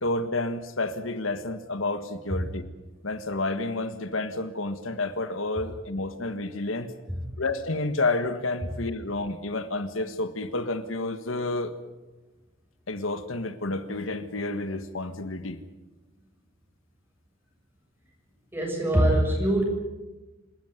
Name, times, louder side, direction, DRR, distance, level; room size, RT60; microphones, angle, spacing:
voice 1, 0.0-2.6 3.0-6.9 7.4-11.7 12.9-15.6, left 2 dB, 90° left, 10 dB, 1.6 m, -30 dB
voice 2, 18.5-19.6, right 1 dB, 10° right, 0 dB, 7.2 m, -22 dB
27.0 x 13.5 x 9.5 m, 1.1 s
head